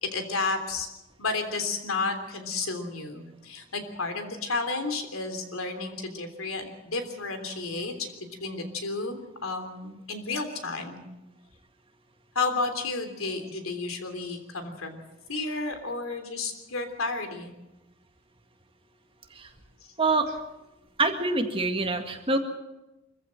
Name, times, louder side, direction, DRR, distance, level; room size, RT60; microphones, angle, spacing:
voice 1, 0.0-0.9 1.2-8.1 8.4-11.0 12.3-15.0 15.3-17.5, left 3 dB, 90° left, 7 dB, 3.3 m, -32 dB
voice 2, 20.0-20.3 21.0-22.4, right 3 dB, 25° right, 5 dB, 1.9 m, -25 dB
24.5 x 15.0 x 7.7 m, 0.99 s
head